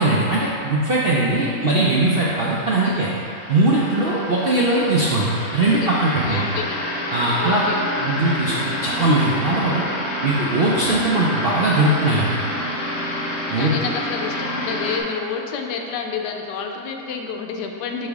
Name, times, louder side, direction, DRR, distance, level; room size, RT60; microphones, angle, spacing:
voice 1, 0.0-3.1 3.5-6.5 7.1-7.6 8.0-9.8 10.2-12.4 13.5-13.7, right 2 dB, 70° right, -6 dB, 0.5 m, -20 dB
voice 2, 1.3-1.7 2.8-3.0 5.8-5.9 6.2-6.8 7.4-7.9 13.6-18.1, left 6 dB, 90° left, 3 dB, 1.2 m, -29 dB
sound 1, 1.5-15.0, left 1 dB, 70° left, 1.4 m, -28 dB
5.5 x 5.1 x 3.5 m, 2.7 s
omnidirectional pair, 1.8 m